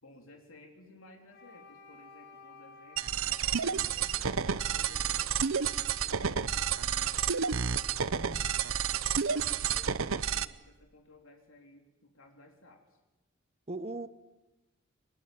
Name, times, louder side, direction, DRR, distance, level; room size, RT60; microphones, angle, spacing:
voice 1, 0.0-4.3 4.6-7.2 7.5-8.7 9.0-13.0, left 2 dB, 75° left, 2 dB, 3.5 m, -57 dB
Wind instrument woodwind instrument, 1.3-9.3, left 1 dB, 55° left, 4.9 m, -56 dB
sound 1, 3.0-10.5, right 7 dB, 70° right, 0.8 m, -30 dB
voice 2, 8.0-8.4 13.7-14.1, right 2 dB, 30° right, 13 dB, 0.9 m, -40 dB
23.0 x 20.5 x 9.2 m, 1.1 s
head